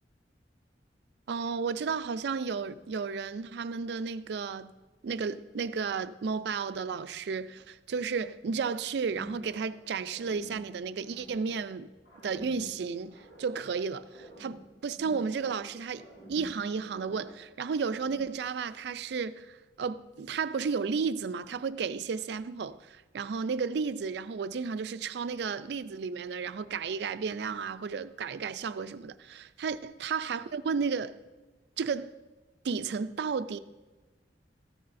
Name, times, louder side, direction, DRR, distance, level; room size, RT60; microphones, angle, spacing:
voice 1, 1.3-4.7 5.0-11.9 12.2-31.1 31.8-32.1 32.6-33.6, right 5 dB, 70° right, 0.4 m, -33 dB
sound 1, 9.1-9.8 10.0-11.7 12.0-13.7 14.0-15.7 15.9-17.5 17.8-18.4, equal, 70° left, 3.3 m, -50 dB
14.0 x 9.5 x 2.6 m
head